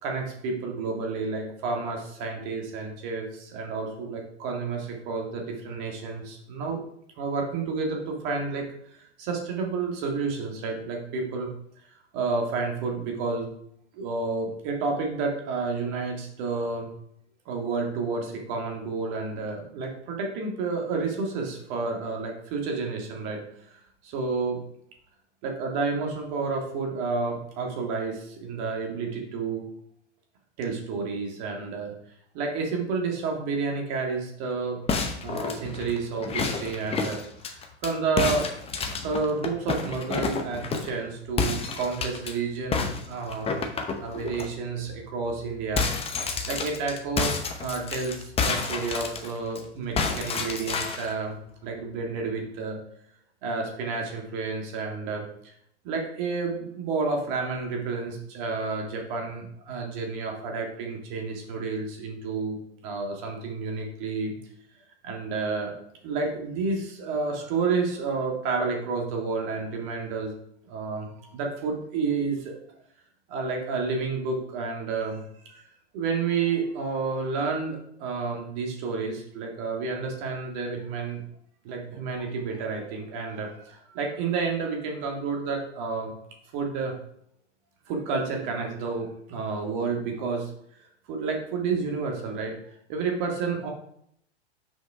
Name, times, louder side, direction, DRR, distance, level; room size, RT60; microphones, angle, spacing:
voice 1, 0.0-6.8 7.2-11.5 12.1-13.5 13.9-16.9 17.5-23.8 24.0-24.6 25.4-29.7 30.6-31.9 32.3-34.8 35.2-37.2 37.5-38.5 39.0-43.7 43.9-45.9 46.5-47.3 47.6-52.8 53.4-55.5 55.8-62.6 62.8-64.4 65.0-65.8 66.0-70.3 70.6-72.5 73.3-75.6 75.9-81.2 81.6-86.1 86.5-86.9 87.9-90.5 90.8-92.5 92.9-93.7, right 4 dB, 45° right, 1 dB, 2.1 m, -30 dB
sound 1, 34.9-37.9 38.2-41.0 41.4-42.3 42.7-44.5 44.9-45.0 45.3-49.6 50.0-51.1, left 4 dB, 15° left, 0.9 m, -29 dB
6.1 x 4.9 x 4.8 m, 0.71 s
hypercardioid pair, 105°, 34 cm